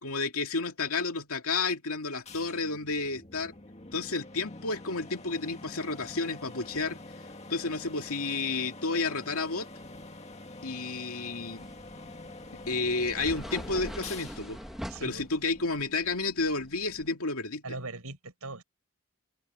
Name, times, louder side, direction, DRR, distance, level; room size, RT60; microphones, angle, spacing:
voice 1, 0.0-3.5 3.9-7.0 7.5-9.7 10.6-11.7 12.7-14.6 15.0-17.6, left 3 dB, 80° left, 2.5 m, -31 dB
sound 1, 2.3-15.8, left 2 dB, 30° left, 2.0 m, -46 dB
sound 2, 11.6-17.1, equal, ahead, 1.9 m, -44 dB
voice 2, 14.9-15.3 17.6-18.6, right 3 dB, 85° right, 6.3 m, -40 dB
open air
head